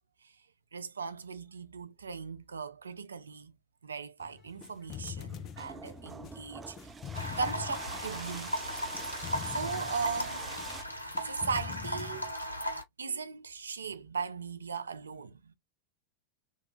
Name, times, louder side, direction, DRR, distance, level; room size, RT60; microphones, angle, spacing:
voice 1, 0.7-3.6 3.8-6.8 7.4-8.6 9.4-10.5 11.2-12.3 13.0-15.5, right 5 dB, 75° right, 0.4 m, -38 dB
sound 1, 4.2-12.3, left 8 dB, 35° left, 0.5 m, -44 dB
sound 2, 5.2-10.8, right 4 dB, 15° right, 0.4 m, -45 dB
sound 3, 7.1-12.8, equal, 90° left, 0.6 m, -37 dB
3.1 x 2.3 x 2.9 m
figure-of-eight pair, 90°, 0 cm